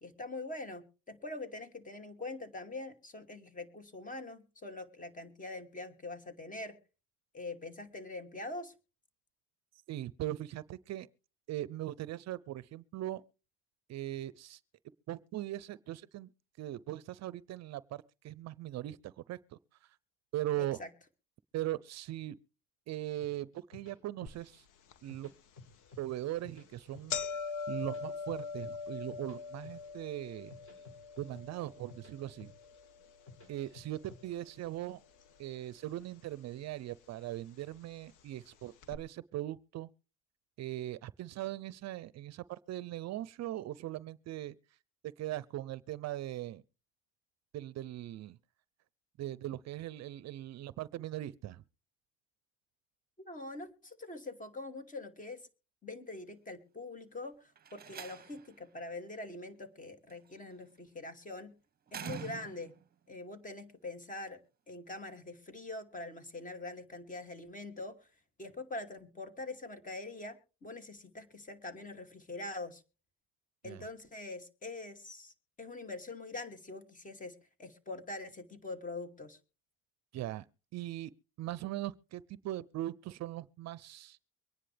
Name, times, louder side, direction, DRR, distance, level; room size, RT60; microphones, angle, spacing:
voice 1, 0.0-6.8 7.3-8.7 20.6-20.9 53.2-55.5 55.8-61.5 61.9-62.7 63.1-64.4 64.7-68.1 68.4-72.8 73.6-79.4, left 2 dB, 25° left, 2.6 m, -44 dB
voice 2, 9.9-11.1 11.5-13.2 13.9-14.6 15.1-16.3 16.6-19.4 20.3-20.8 21.5-22.4 22.9-24.6 25.0-25.3 26.0-27.2 27.7-30.5 31.2-32.5 33.5-35.0 35.4-39.9 40.6-44.5 45.2-46.6 47.5-48.4 49.2-51.6 73.6-73.8 80.1-80.4 80.7-81.1 81.4-84.2, right 14 dB, 55° right, 0.6 m, -40 dB
sound 1, 23.2-24.6 24.9-26.0 26.3-27.3 27.6-29.4 29.6-30.0 30.3-32.1 32.4-32.8 33.1-34.2, left 3 dB, 40° left, 7.6 m, -54 dB
sound 2, 24.3-24.4 24.9-25.0 25.8-26.0 26.4-26.5 26.7-34.9 35.2-35.9 36.7-36.8 37.8-37.9 38.2-38.3 38.8-39.0, left 5 dB, 70° left, 1.4 m, -42 dB
Slam, 57.6-58.6 60.1-60.5 61.9-62.9, right 8 dB, 30° right, 1.1 m, -45 dB
23.5 x 10.0 x 3.4 m
cardioid pair, 105°, 33 cm